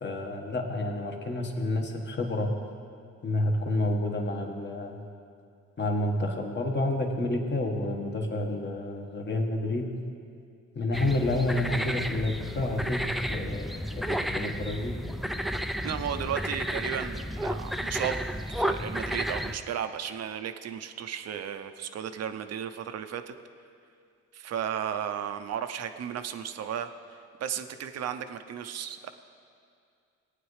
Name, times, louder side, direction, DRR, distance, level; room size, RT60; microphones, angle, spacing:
voice 1, 0.0-2.5 3.2-5.0 5.8-9.8 10.7-14.9, left 2 dB, 35° left, 2 dB, 1.4 m, -29 dB
sound 1, 10.9-19.6, equal, ahead, 0.3 m, -32 dB
voice 2, 15.8-18.2 18.5-23.3 24.3-29.1, right 9 dB, 55° right, 9 dB, 0.6 m, -34 dB
18.0 x 9.5 x 3.2 m, 2.4 s
cardioid pair, 90°, 30 cm